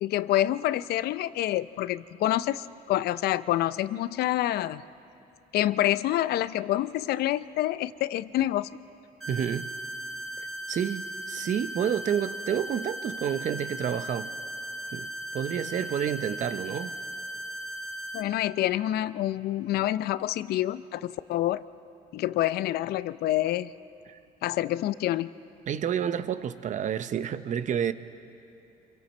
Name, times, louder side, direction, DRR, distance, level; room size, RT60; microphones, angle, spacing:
voice 1, 0.0-4.8 5.5-8.7 18.1-21.6 22.1-23.7 24.4-25.3, left 14 dB, 70° left, 16 dB, 0.5 m, -27 dB
sound 1, 9.2-18.2, right 1 dB, ahead, 4.0 m, -37 dB
voice 2, 9.3-9.7 10.4-14.3 14.9-16.9 24.1-24.2 25.7-27.9, right 8 dB, 45° right, 12 dB, 0.8 m, -30 dB
27.0 x 22.5 x 4.4 m, 2.8 s
cardioid pair, 110°, 17 cm